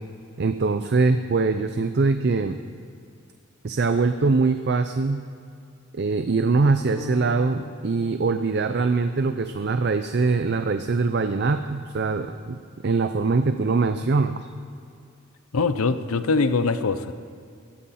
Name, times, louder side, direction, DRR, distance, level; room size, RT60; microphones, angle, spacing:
voice 1, 0.4-2.6 3.6-5.2 5.9-12.6 12.8-14.4, right 4 dB, 50° right, 9 dB, 0.5 m, -22 dB
sound 1, 6.9-9.2, right 1 dB, 15° left, 2.9 m, -41 dB
voice 2, 15.5-17.1, left 4 dB, 85° left, 11 dB, 0.7 m, -22 dB
16.0 x 14.5 x 4.2 m, 2.4 s
head